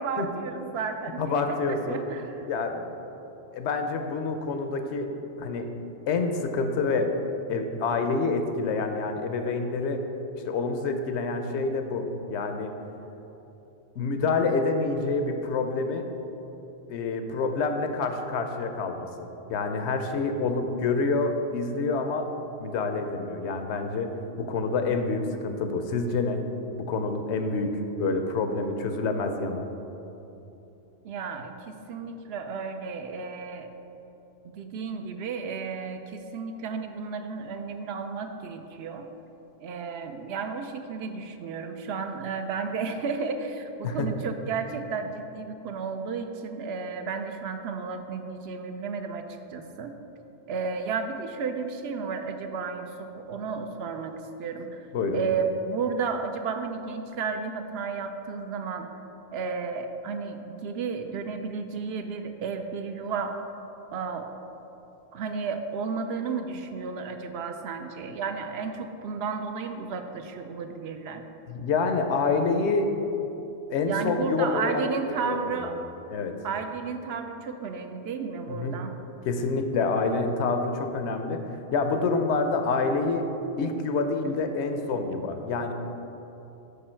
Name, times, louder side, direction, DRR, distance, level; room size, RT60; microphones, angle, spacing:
voice 1, 0.0-1.4 1.7-2.5 31.0-33.7 34.4-39.1 39.6-49.2 49.5-49.9 50.5-54.9 55.1-58.9 59.3-63.4 63.9-64.3 65.1-71.2 73.8-75.8 76.4-78.9, right 5 dB, 70° right, 6 dB, 0.8 m, -33 dB
voice 2, 1.2-2.0 2.5-2.9 3.5-5.1 5.4-5.7 6.1-7.1 7.5-10.0 10.4-12.0 12.3-12.7 14.0-16.1 16.9-22.3 22.6-24.1 24.4-26.4 26.9-29.7 43.8-44.1 54.9-55.2 71.5-72.9 73.7-75.5 76.1-76.3 78.5-78.8 79.2-81.4 81.7-83.3 83.6-85.7, left 4 dB, 80° left, 6 dB, 0.9 m, -27 dB
6.7 x 5.4 x 4.4 m, 2.9 s
omnidirectional pair, 1.2 m